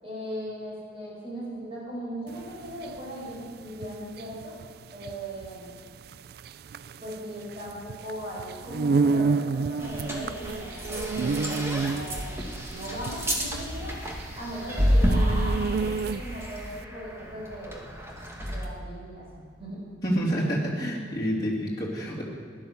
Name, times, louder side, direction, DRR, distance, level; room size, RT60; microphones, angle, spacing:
voice 1, 0.0-4.5 4.9-5.7 7.0-12.3 12.7-14.0 14.3-17.8 18.5-19.8, equal, 30° right, -6 dB, 5.0 m, -38 dB
sound 1, 2.3-16.5, right 4 dB, 55° right, 0.3 m, -30 dB
sound 2, 9.8-18.7, equal, 15° right, 1.8 m, -29 dB
voice 2, 20.0-22.2, equal, 20° left, -5 dB, 2.8 m, -28 dB
15.5 x 11.5 x 6.9 m, 2.1 s
head